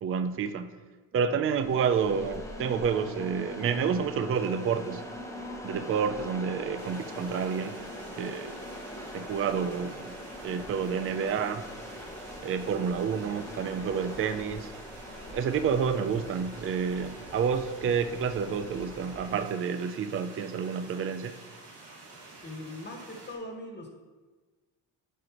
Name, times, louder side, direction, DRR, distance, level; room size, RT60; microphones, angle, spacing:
voice 1, 0.0-0.7 1.1-5.0 5.6-7.8 8.2-8.6 9.1-10.1 10.4-11.6 12.4-14.7 15.3-21.3, right 6 dB, 35° right, 10 dB, 0.4 m, -29 dB
sound 1, 1.4-19.5, left 1 dB, 5° left, 1.0 m, -42 dB
sound 2, 6.8-23.3, right 2 dB, 80° right, 2.4 m, -50 dB
voice 2, 22.4-23.9, left 1 dB, 25° left, 1 dB, 1.5 m, -40 dB
10.0 x 5.0 x 2.9 m, 1.3 s
cardioid pair, 85°, 40 cm